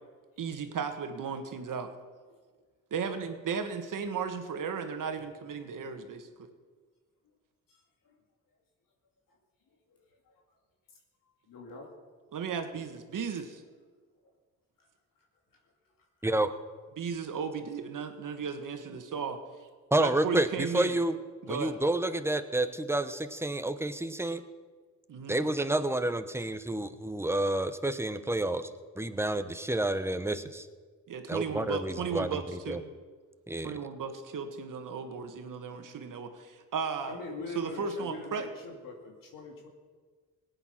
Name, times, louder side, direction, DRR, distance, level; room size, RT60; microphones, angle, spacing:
voice 1, 0.4-1.9 2.9-6.5 12.3-13.6 17.0-19.4 20.0-21.0 21.4-21.7 25.1-25.4 31.1-32.8 33.6-37.2 37.5-38.5, right 5 dB, 65° right, 7 dB, 1.7 m, -35 dB
voice 2, 9.9-10.3 11.5-11.9 37.0-39.7, left 3 dB, 75° left, 0 dB, 2.4 m, -43 dB
voice 3, 19.9-21.2 21.5-24.4 25.3-28.7 29.0-30.7 31.3-32.4 32.7-32.8 33.5-33.8, right 1 dB, 5° right, 10 dB, 1.0 m, -29 dB
18.0 x 8.9 x 5.9 m, 1.5 s
cardioid pair, 65°, 33 cm